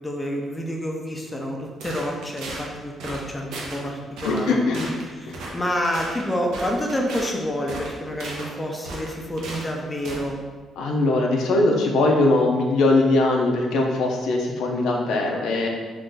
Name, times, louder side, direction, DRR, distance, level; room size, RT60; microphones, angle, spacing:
voice 1, 0.0-4.7 5.2-10.4, equal, 15° left, 0 dB, 0.5 m, -28 dB
sound 1, 1.8-2.7 3.0-3.2 3.5-3.8 4.2-4.5 4.7-5.0 5.3-5.5 5.8-7.3 7.7-8.5 8.8-9.7 10.0-10.2, right 2 dB, 85° right, 0.6 m, -35 dB
voice 2, 4.2-4.9 10.8-15.7, left 2 dB, 80° left, 1 dB, 0.4 m, -21 dB
2.5 x 2.4 x 3.7 m, 1.4 s
cardioid pair, 90°, 0 cm